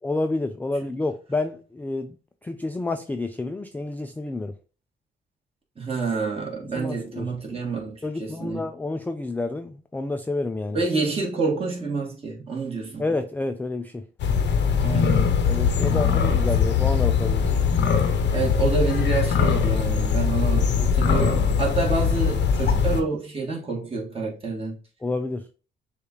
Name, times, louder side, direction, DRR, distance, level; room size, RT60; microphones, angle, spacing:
voice 1, 0.0-2.2 2.4-4.5 6.6-7.6 8.0-10.8 13.0-14.0 15.5-17.5 25.0-25.5, left 2 dB, 10° left, 0.3 m, -29 dB
voice 2, 5.8-8.6 10.7-13.0 14.8-15.3 18.3-24.8, right 4 dB, 30° right, 1.8 m, -28 dB
sound 1, 14.2-23.0, left 6 dB, 65° left, 0.7 m, -21 dB
6.6 x 2.4 x 3.1 m
cardioid pair, 90°, 20 cm